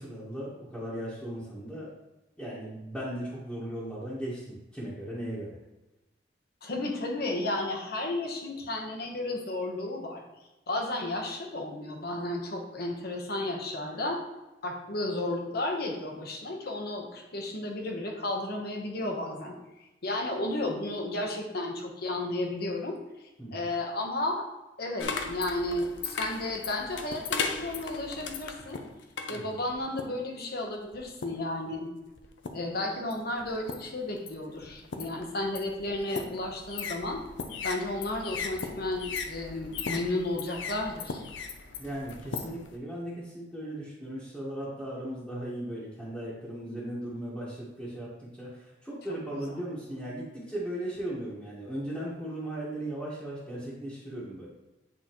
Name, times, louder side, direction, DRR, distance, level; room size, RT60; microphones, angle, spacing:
voice 1, 0.0-1.9 2.4-5.5 23.4-23.7 29.3-29.5 41.8-54.5, right 1 dB, 5° left, -11 dB, 1.4 m, -37 dB
voice 2, 6.6-10.2 10.7-14.2 14.6-19.5 20.0-23.0 23.5-24.4 24.8-28.8 29.3-31.9 32.5-37.2 37.6-41.2 49.1-49.4, left 2 dB, 55° left, 1 dB, 1.1 m, -33 dB
sound 1, 25.0-30.3 30.9-31.5 32.2-32.7 33.1-42.8, left 5 dB, 85° left, 0.6 m, -37 dB
8.7 x 4.0 x 3.0 m, 1.0 s
head